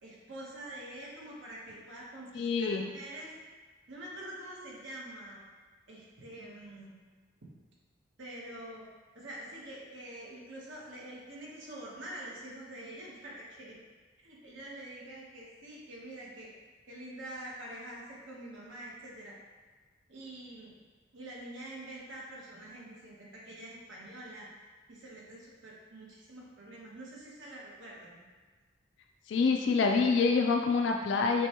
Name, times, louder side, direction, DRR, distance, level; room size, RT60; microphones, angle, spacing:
voice 1, 0.0-3.3 3.9-5.6 5.9-6.9 8.2-8.8 9.1-13.7 14.2-16.5 16.9-19.4 20.1-20.8 21.1-24.5 24.9-28.1, right 1 dB, 90° right, -4 dB, 1.1 m, -46 dB
voice 2, 2.4-2.8 29.3-31.5, left 4 dB, 65° left, 3 dB, 0.3 m, -26 dB
6.7 x 2.3 x 2.9 m, 1.4 s
head